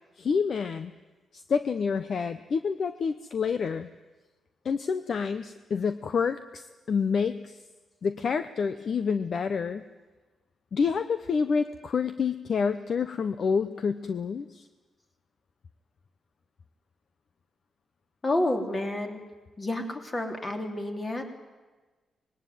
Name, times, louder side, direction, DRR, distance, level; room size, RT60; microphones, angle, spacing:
voice 1, 0.2-0.9 1.3-3.9 4.6-7.6 8.0-9.8 10.7-14.7, left 5 dB, 45° left, 11 dB, 0.8 m, -28 dB
voice 2, 18.2-19.2 19.6-21.3, left 1 dB, 20° left, 4 dB, 3.2 m, -29 dB
25.0 x 20.5 x 9.4 m, 1.3 s
wide cardioid pair, 170°, 0 cm